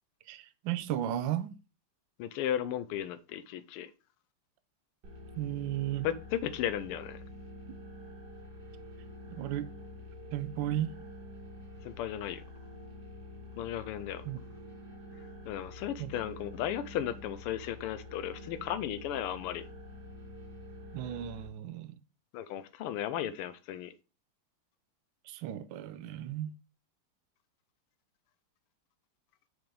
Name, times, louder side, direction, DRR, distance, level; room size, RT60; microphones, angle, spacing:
voice 1, 0.3-1.5 5.4-6.1 7.7-7.8 9.3-9.7 10.3-11.0 14.2-14.4 16.0-16.1 20.9-22.0 25.2-26.5, right 12 dB, 70° right, 1.2 m, -35 dB
voice 2, 2.2-3.9 6.0-7.2 11.8-12.4 13.6-14.2 15.5-19.6 22.3-23.9, left 11 dB, 85° left, 1.5 m, -35 dB
sound 1, 5.0-21.5, left 1 dB, 50° right, 2.3 m, -47 dB
6.1 x 5.2 x 3.2 m
omnidirectional pair, 2.4 m